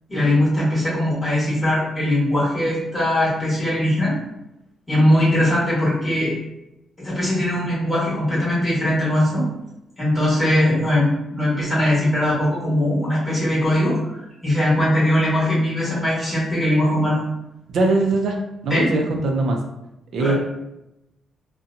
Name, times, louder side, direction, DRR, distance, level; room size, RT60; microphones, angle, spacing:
voice 1, 0.1-4.1 4.9-6.3 7.0-9.5 10.0-17.2 18.7-18.9 20.2-20.4, left 1 dB, 5° left, -10 dB, 1.3 m, -20 dB
voice 2, 17.7-18.4 18.6-19.6 20.1-20.4, right 2 dB, 65° right, 2 dB, 0.5 m, -20 dB
2.7 x 2.2 x 2.5 m, 0.90 s
cardioid pair, 155°, 0 cm